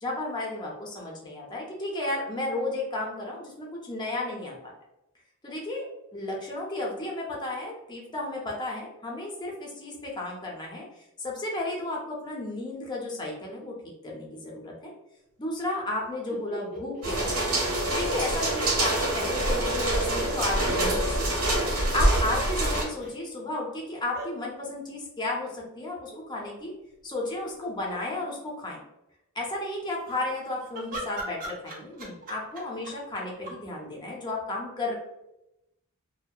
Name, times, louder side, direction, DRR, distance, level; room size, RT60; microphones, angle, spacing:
voice 1, 0.0-4.7 5.4-10.8 11.2-13.8 14.0-14.9 15.4-17.4 17.9-21.4 21.9-26.7 27.0-28.8 29.4-35.0, left 2 dB, 20° left, -2 dB, 0.5 m, -33 dB
sound 1, 16.3-18.5 18.8-18.9 21.0-21.7 23.0-23.1 24.1-24.3 26.1-26.5 27.0-27.1 27.3-28.0 29.9-33.6, right 1 dB, 40° right, 0.5 m, -42 dB
sound 2, 17.0-22.8, right 1 dB, 80° right, 1.0 m, -25 dB
2.6 x 2.1 x 2.2 m, 0.88 s
head